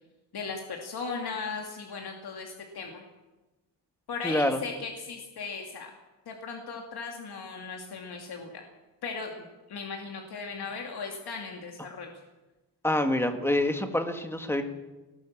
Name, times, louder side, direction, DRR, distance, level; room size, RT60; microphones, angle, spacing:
voice 1, 0.3-3.0 4.1-5.9 6.3-8.6 9.0-9.3 9.7-12.1, left 4 dB, 70° left, 1 dB, 2.7 m, -37 dB
voice 2, 4.2-4.6 12.8-14.6, left 1 dB, 5° left, 6 dB, 1.9 m, -26 dB
19.5 x 19.0 x 7.4 m, 1.1 s
wide cardioid pair, 145°, 40 cm